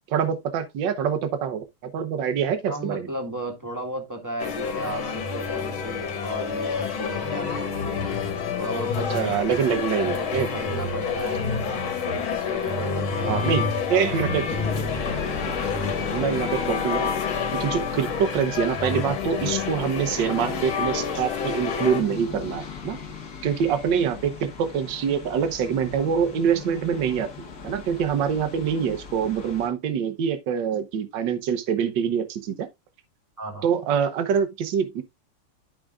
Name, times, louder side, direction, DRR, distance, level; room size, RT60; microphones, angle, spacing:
voice 1, 0.1-3.1 9.1-10.5 13.3-14.5 15.5-15.6 16.1-17.1 17.5-23.0 23.4-27.3 27.6-32.7 33.6-35.0, right 7 dB, 65° right, 1.6 m, -25 dB
voice 2, 2.7-8.2 8.6-11.5 12.0-13.5 15.2-15.4 33.4-33.7, right 1 dB, 10° right, 1.3 m, -35 dB
sound 1, 4.4-22.0, left 5 dB, 70° left, 2.1 m, -28 dB
sound 2, 14.5-29.7, left 5 dB, 45° left, 1.7 m, -37 dB
12.5 x 5.1 x 2.3 m
omnidirectional pair, 2.3 m